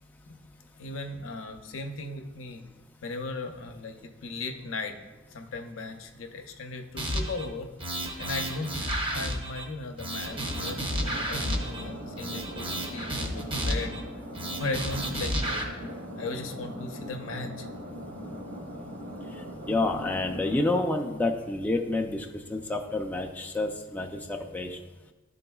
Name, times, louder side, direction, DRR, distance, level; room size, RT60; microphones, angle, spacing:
voice 1, 0.8-2.6 3.0-5.0 5.3-7.7 8.2-13.9 14.6-15.7 16.2-17.7, left 3 dB, 80° left, 5 dB, 0.6 m, -37 dB
sound 1, 7.0-7.5 7.8-9.7 10.0-11.8 12.2-14.0 14.3-15.6, right 1 dB, 25° right, 0.6 m, -31 dB
sound 2, 10.3-20.8, equal, 70° right, 1.1 m, -40 dB
voice 2, 19.7-24.8, left 2 dB, 10° left, 1 dB, 0.3 m, -29 dB
10.5 x 3.8 x 2.3 m, 1.2 s
head